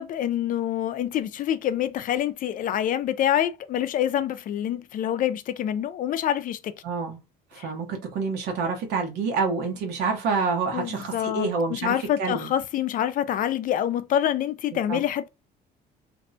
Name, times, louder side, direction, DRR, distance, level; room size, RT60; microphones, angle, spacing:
voice 1, 0.0-6.7 7.6-7.7 10.7-15.3, left 10 dB, 55° left, 0.4 m, -26 dB
voice 2, 6.8-7.2 7.5-12.5 14.7-15.0, right 4 dB, 85° right, 0.9 m, -28 dB
2.6 x 2.1 x 2.6 m
cardioid pair, 110°, 17 cm